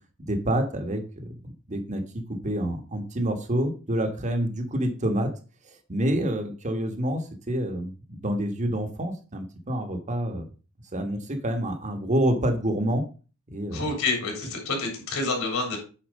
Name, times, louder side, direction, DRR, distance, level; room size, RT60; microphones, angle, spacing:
voice 1, 0.2-2.0 2.4-5.3 5.9-10.5 10.9-13.0 13.5-13.8, right 1 dB, 35° right, 6 dB, 1.4 m, -27 dB
voice 2, 13.7-15.8, left 3 dB, 70° left, 1 dB, 3.6 m, -28 dB
8.9 x 4.4 x 5.2 m, 0.35 s
head